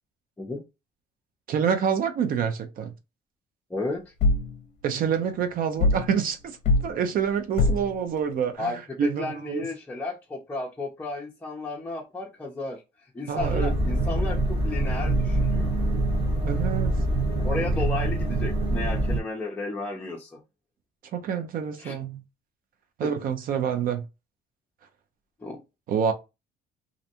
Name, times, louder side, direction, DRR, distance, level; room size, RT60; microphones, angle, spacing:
voice 1, 1.5-2.9 4.8-6.6 6.8-9.6 13.3-13.7 16.4-16.9 21.1-22.2 23.0-24.0 25.9-26.1, right 7 dB, 55° right, 0.5 m, -27 dB
voice 2, 3.7-4.1 8.6-12.8 13.1-14.4 14.6-15.7 17.4-20.4 21.8-22.0 23.0-23.1 25.4-25.6, left 2 dB, 10° left, 0.5 m, -33 dB
sound 1, 4.2-4.5 5.8-6.1 6.6-6.9 7.6-7.9, left 2 dB, 50° left, 0.6 m, -22 dB
sound 2, 13.4-19.2, right 2 dB, 30° right, 1.1 m, -25 dB
2.6 x 2.1 x 2.8 m
cardioid pair, 110°, 17 cm